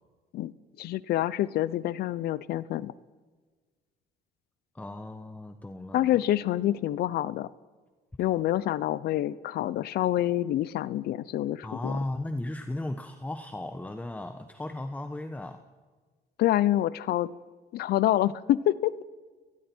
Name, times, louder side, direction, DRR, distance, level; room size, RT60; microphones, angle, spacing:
voice 1, 0.8-2.9 5.9-7.5 8.2-12.0 16.4-17.3 17.7-19.0, left 13 dB, 70° left, 19 dB, 0.7 m, -27 dB
voice 2, 4.7-6.2 11.6-15.6, left 1 dB, 10° left, 8 dB, 1.1 m, -36 dB
29.5 x 19.5 x 4.6 m, 1.4 s
cardioid pair, 110°, 17 cm